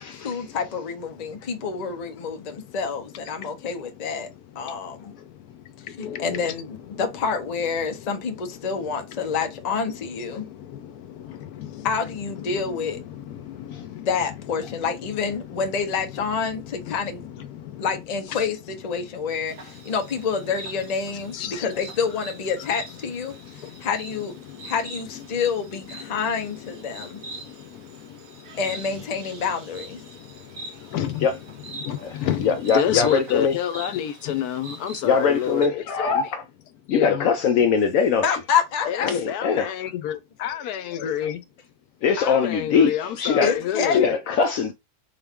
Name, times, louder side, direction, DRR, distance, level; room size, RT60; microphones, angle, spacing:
voice 1, 0.2-4.3 4.6-5.1 6.0-10.5 11.8-13.0 14.1-17.2 17.8-23.3 23.8-24.3 24.6-27.2 28.6-30.0 38.2-39.1 43.4-44.0, left 6 dB, 40° left, 0.6 m, -27 dB
voice 2, 6.0-6.5 9.3-9.4 9.9-10.0 10.7-10.9 11.2-15.2 15.5-16.2 16.6-18.5 20.4-20.5 21.3-21.7 22.6-22.7 24.5-25.3 25.9-26.2 28.7-28.8 30.9-31.3 31.6-36.2 36.9-37.3 38.8-41.4 42.2-44.1, left 10 dB, 90° left, 1.2 m, -30 dB
Insect, 19.4-35.7, right 2 dB, 65° right, 1.2 m, -43 dB
voice 3, 32.4-33.5 35.0-36.4 36.9-38.2 39.0-39.7 42.0-43.5 43.9-44.7, left 6 dB, 70° left, 0.9 m, -21 dB
3.8 x 2.4 x 3.5 m
omnidirectional pair, 1.6 m